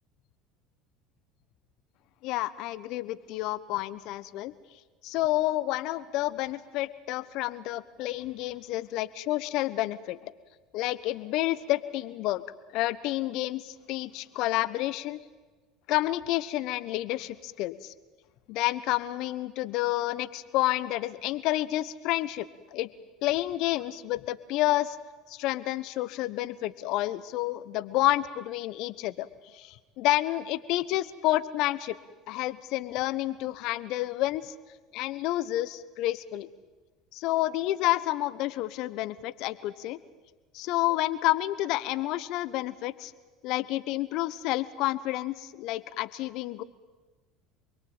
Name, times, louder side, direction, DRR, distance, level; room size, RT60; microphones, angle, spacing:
voice 1, 2.2-4.5 5.0-10.3 10.7-12.4 12.7-15.2 15.9-17.9 18.5-22.5 22.7-22.9 23.2-25.0 25.3-29.3 29.6-31.9 32.3-34.5 34.9-36.5 37.1-40.0 40.5-43.1 43.4-46.6, left 16 dB, 60° left, 15 dB, 1.2 m, -29 dB
27.5 x 22.0 x 9.0 m, 1.3 s
hypercardioid pair, 70°, 0 cm